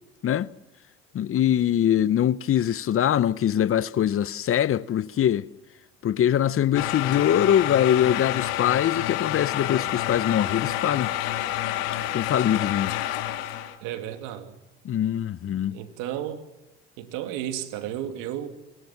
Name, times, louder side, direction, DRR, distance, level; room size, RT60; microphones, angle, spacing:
voice 1, 1.1-5.5 6.0-11.1 12.1-12.9 14.8-15.8, left 10 dB, 45° left, 0.9 m, -23 dB
sound 1, 6.7-13.8, left 13 dB, 80° left, 2.8 m, -28 dB
voice 2, 13.8-14.5 15.7-16.4 17.0-18.5, right 11 dB, 75° right, 2.8 m, -33 dB
26.5 x 24.0 x 6.0 m
hypercardioid pair, 70°, 31 cm